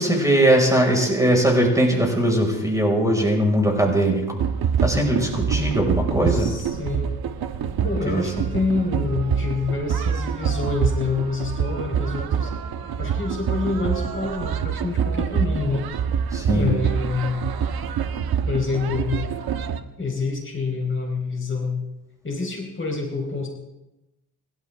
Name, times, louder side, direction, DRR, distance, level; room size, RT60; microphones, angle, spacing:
voice 1, 0.0-4.4 4.8-6.5 8.1-8.2 16.3-16.7, right 1 dB, 10° right, 0 dB, 5.6 m, -20 dB
sound 1, 4.4-19.8, right 7 dB, 60° right, 1.5 m, -26 dB
voice 2, 6.3-7.2 7.8-12.5 13.0-15.9 16.5-17.4 18.5-19.3 20.0-21.8 22.2-23.5, left 4 dB, 30° left, 1 dB, 4.5 m, -27 dB
30.0 x 12.5 x 3.7 m, 0.97 s
cardioid pair, 85°, 41 cm